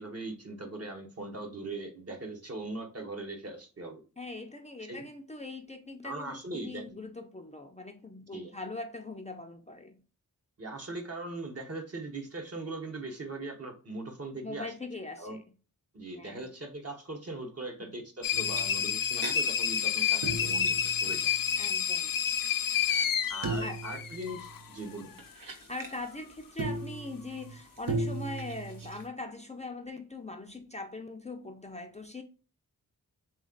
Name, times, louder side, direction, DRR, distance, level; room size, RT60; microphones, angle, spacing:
voice 1, 0.0-4.0 4.8-5.0 6.0-6.8 8.3-8.5 10.6-14.7 15.2-15.4 15.9-21.3 23.3-25.1, right 2 dB, 45° right, 1.1 m, -40 dB
voice 2, 4.2-10.0 14.4-15.4 16.2-16.5 17.8-18.0 21.6-22.2 23.6-23.9 25.4-32.2, left 2 dB, 20° left, 0.5 m, -41 dB
sound 1, 18.2-24.6, left 8 dB, 70° left, 0.5 m, -29 dB
sound 2, 18.3-19.3 19.7-19.8 20.1-21.7 21.9-25.9 26.6-29.1, right 3 dB, 65° right, 1.1 m, -37 dB
3.4 x 3.1 x 3.7 m
wide cardioid pair, 75°, 35 cm